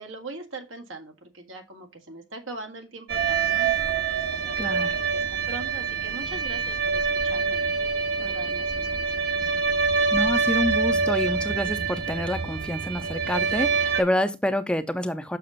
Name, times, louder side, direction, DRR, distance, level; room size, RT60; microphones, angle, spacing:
voice 1, 0.0-7.7 8.2-9.6, right 2 dB, 85° right, 1.9 m, -41 dB
sound 1, 3.1-14.0, right 5 dB, 55° right, 1.1 m, -25 dB
voice 2, 4.6-5.0 10.1-15.4, left 1 dB, 5° left, 0.5 m, -27 dB
6.8 x 6.3 x 3.9 m
head